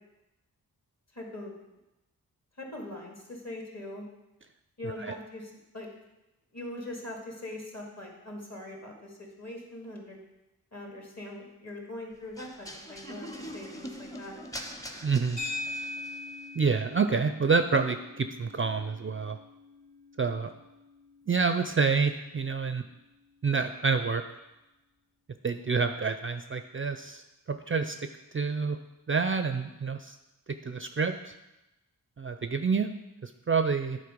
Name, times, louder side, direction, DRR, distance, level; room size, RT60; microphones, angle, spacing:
voice 1, 1.1-1.6 2.6-4.0 4.8-5.9 6.5-10.2 10.7-14.4, left 1 dB, 45° left, 0 dB, 2.1 m, -42 dB
sound 1, 12.4-16.3, equal, 10° left, 0.8 m, -43 dB
voice 2, 15.0-15.4 16.6-19.4 20.2-20.5 21.3-22.8 23.4-24.2 25.4-27.2 27.5-28.0 28.3-28.8 29.1-30.2 30.7-31.3 32.2-32.9 33.2-34.0, right 5 dB, 35° right, 8 dB, 0.4 m, -28 dB
sound 2, 15.4-23.8, left 2 dB, 85° left, 2.7 m, -43 dB
9.8 x 4.2 x 5.2 m, 0.95 s
wide cardioid pair, 75°, 38 cm